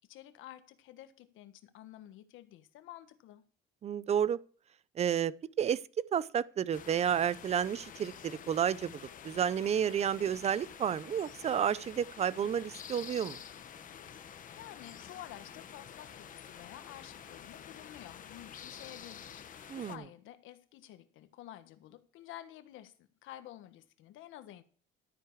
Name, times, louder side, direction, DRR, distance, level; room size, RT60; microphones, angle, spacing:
voice 1, 0.1-3.4 14.1-14.2 14.5-24.6, left 13 dB, 70° left, 1.5 m, -51 dB
voice 2, 3.8-4.4 5.0-5.3 5.6-5.8 6.1-13.4 19.7-20.0, right 8 dB, 30° right, 0.5 m, -31 dB
sound 1, 6.7-20.0, left 8 dB, 40° left, 1.1 m, -49 dB
13.0 x 9.6 x 4.8 m
cardioid pair, 130°, 21 cm